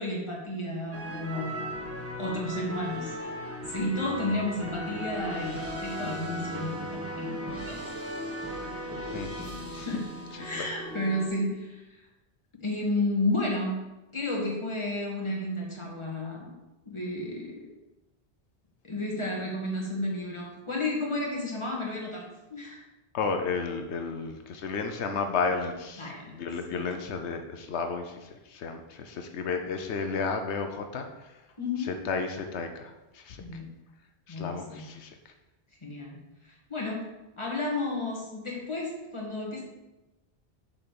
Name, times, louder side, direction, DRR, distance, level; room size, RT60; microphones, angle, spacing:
voice 1, 0.0-1.6 2.2-3.2 3.7-7.8 9.8-10.1 10.4-12.0 12.5-13.8 14.1-16.6 16.9-17.7 18.8-22.2 22.5-22.8 26.0-26.4 26.7-26.9 31.6-32.0 33.4-33.7 34.3-34.8 35.8-37.1 37.4-39.6, left 2 dB, 25° left, -3 dB, 2.2 m, -32 dB
sound 1, 0.9-11.3, equal, 15° right, 1.3 m, -37 dB
voice 2, 23.1-31.4 31.8-33.4 34.3-35.3, left 5 dB, 85° left, 5 dB, 1.0 m, -33 dB
7.0 x 5.1 x 6.8 m, 1.0 s
omnidirectional pair, 1.1 m